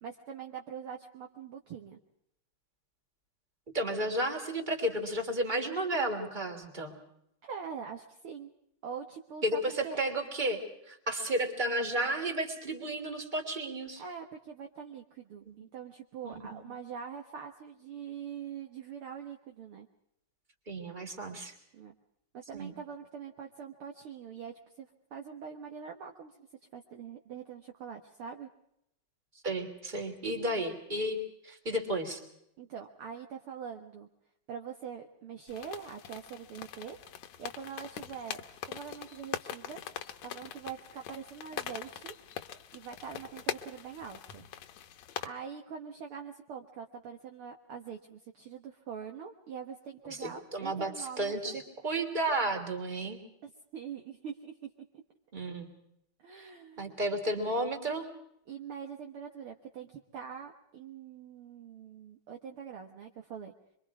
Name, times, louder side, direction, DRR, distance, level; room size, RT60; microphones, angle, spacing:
voice 1, 0.0-2.0 7.4-8.5 8.8-10.0 14.0-19.9 21.7-21.9 22.3-26.5 26.7-28.5 32.6-34.1 34.5-37.0 37.4-39.8 40.2-42.1 42.7-44.4 45.2-51.6 53.4-55.0 56.2-57.0 58.5-63.5, right 7 dB, 55° right, 3 dB, 2.0 m, -44 dB
voice 2, 3.7-7.0 9.4-10.6 10.9-14.0 15.5-15.6 16.2-16.6 20.7-21.5 22.5-22.7 29.4-32.2 50.0-53.2 55.3-55.7 56.3-56.5 56.8-58.1, right 1 dB, 15° right, 3 dB, 3.1 m, -33 dB
sound 1, 35.5-45.3, left 10 dB, 70° left, 2.3 m, -42 dB
26.5 x 24.0 x 4.8 m, 0.77 s
omnidirectional pair, 3.3 m